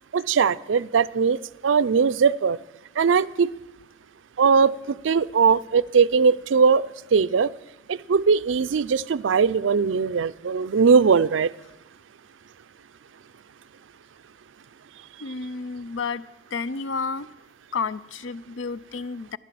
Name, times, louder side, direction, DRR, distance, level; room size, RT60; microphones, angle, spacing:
voice 1, 0.1-2.6 3.0-3.5 4.4-7.5 7.9-11.5, right 5 dB, 80° right, 17 dB, 0.4 m, -20 dB
voice 2, 15.2-16.2 16.5-17.3 17.7-19.4, left 4 dB, 80° left, 17 dB, 0.5 m, -31 dB
14.0 x 11.0 x 7.6 m, 0.99 s
head